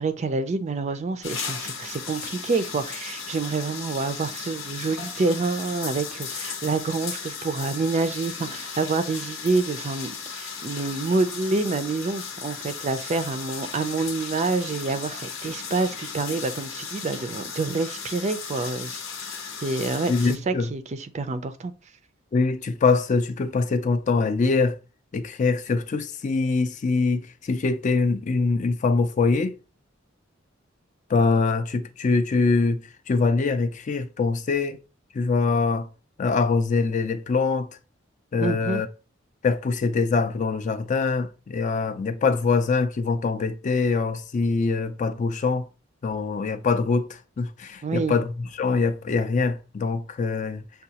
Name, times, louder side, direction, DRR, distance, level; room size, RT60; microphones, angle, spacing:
voice 1, 0.0-19.0 19.6-21.7 38.4-38.8 47.8-48.2, right 3 dB, 35° right, 0.4 m, -27 dB
sound 1, 1.2-20.4, left 6 dB, 85° left, 0.8 m, -36 dB
voice 2, 20.1-20.7 22.3-24.8 25.1-29.6 31.1-34.8 35.1-35.9 36.2-37.7 38.3-38.9 39.4-45.7 46.0-48.3 48.6-50.6, left 4 dB, 40° left, 0.4 m, -23 dB
6.5 x 2.3 x 2.8 m
head